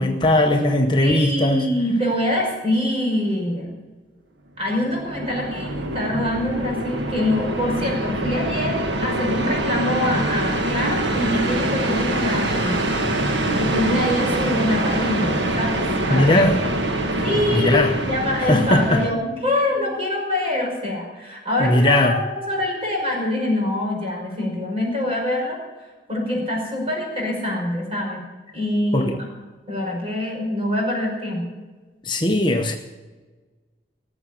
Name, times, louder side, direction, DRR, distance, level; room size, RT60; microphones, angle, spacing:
voice 1, 0.0-1.7 16.1-16.6 17.5-17.9 18.4-19.0 21.6-22.2 28.9-29.2 32.0-32.8, left 1 dB, 25° left, 3 dB, 0.9 m, -19 dB
voice 2, 1.0-3.8 4.6-12.8 13.6-16.4 17.2-22.2 22.5-28.3 28.5-29.2 29.7-31.5, left 1 dB, 30° right, 0 dB, 5.4 m, -25 dB
sound 1, 4.7-19.1, right 1 dB, 80° right, 1.7 m, -24 dB
18.5 x 7.2 x 9.8 m, 1.3 s
head